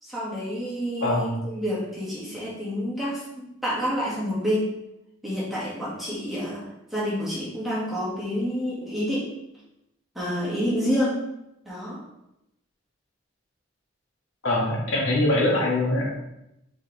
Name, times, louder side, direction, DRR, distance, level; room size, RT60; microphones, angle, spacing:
voice 1, 0.0-4.7 5.2-9.3 10.1-11.2 11.7-12.0, equal, ahead, -9 dB, 2.1 m, -28 dB
voice 2, 1.0-1.3 14.4-16.1, left 1 dB, 85° left, -3 dB, 1.7 m, -23 dB
5.3 x 5.1 x 3.5 m, 0.86 s
head